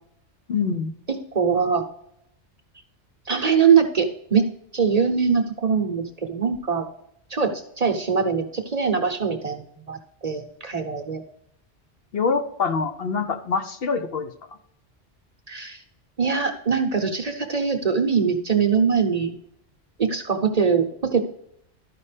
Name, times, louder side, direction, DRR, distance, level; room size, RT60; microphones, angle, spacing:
voice 1, 0.5-0.9 12.1-14.3, left 5 dB, 60° left, 7 dB, 0.9 m, -25 dB
voice 2, 1.3-1.8 3.3-4.4 4.7-6.8 7.3-11.2 15.5-15.8 16.2-19.3 20.0-21.2, right 6 dB, 40° right, 4 dB, 0.8 m, -22 dB
12.5 x 5.4 x 3.3 m, 0.75 s
omnidirectional pair, 1.2 m